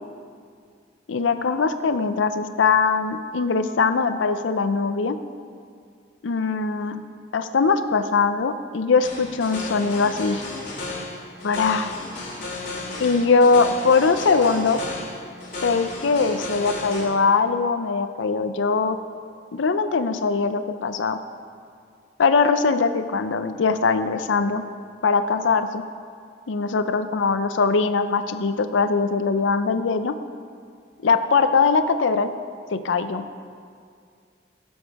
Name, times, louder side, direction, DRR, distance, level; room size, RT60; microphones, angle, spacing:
voice 1, 1.1-5.2 6.2-7.0 7.3-10.4 11.4-12.0 13.0-14.8 15.6-19.0 19.5-21.2 22.2-24.6 25.0-25.8 26.5-30.1 31.0-32.3 32.7-33.2, left 4 dB, 80° left, 10 dB, 0.5 m, -21 dB
sound 1, 9.0-17.0, left 2 dB, 40° left, 2.7 m, -34 dB
16.5 x 7.1 x 4.8 m, 2.2 s
head